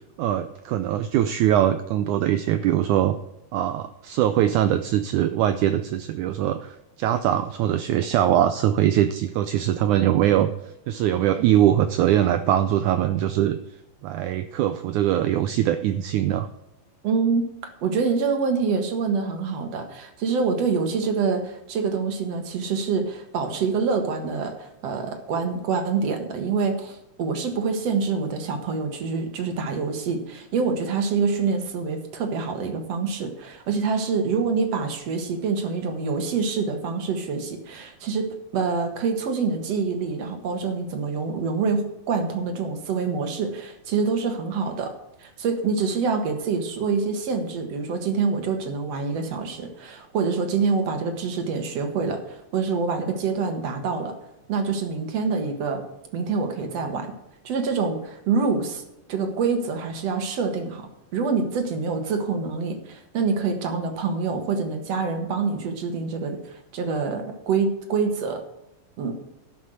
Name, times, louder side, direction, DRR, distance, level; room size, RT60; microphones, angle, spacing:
voice 1, 0.2-3.2 3.5-10.5 10.9-13.6 14.0-16.5, right 11 dB, 90° right, 11 dB, 1.7 m, -22 dB
voice 2, 17.0-17.5 17.8-44.9 45.2-54.1 54.5-55.8 56.1-57.1 57.4-58.8 59.1-68.4 69.0-69.2, right 5 dB, 55° right, 5 dB, 2.2 m, -26 dB
12.0 x 5.7 x 7.8 m, 0.89 s
omnidirectional pair, 4.2 m